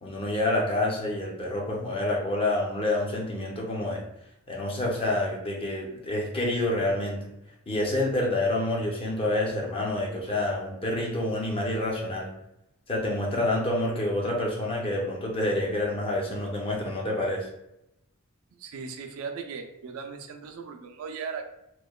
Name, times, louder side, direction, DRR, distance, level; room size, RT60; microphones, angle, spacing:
voice 1, 0.0-4.0 4.5-7.2 7.7-12.3 12.9-17.5, left 1 dB, 25° left, -1 dB, 0.5 m, -28 dB
voice 2, 18.5-21.5, right 5 dB, 70° right, 5 dB, 0.3 m, -38 dB
3.0 x 2.1 x 2.2 m, 0.83 s
head